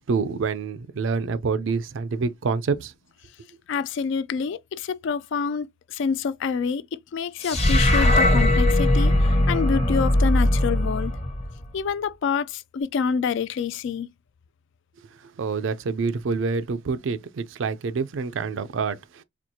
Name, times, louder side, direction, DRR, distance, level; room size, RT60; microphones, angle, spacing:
voice 1, 0.0-2.9 15.4-19.2, right 4 dB, 70° right, 0.4 m, -27 dB
voice 2, 3.7-11.2 11.7-14.1, left 6 dB, 65° left, 0.3 m, -27 dB
sound 1, 7.4-11.8, left 1 dB, 30° left, 0.8 m, -20 dB
4.3 x 2.4 x 2.7 m
head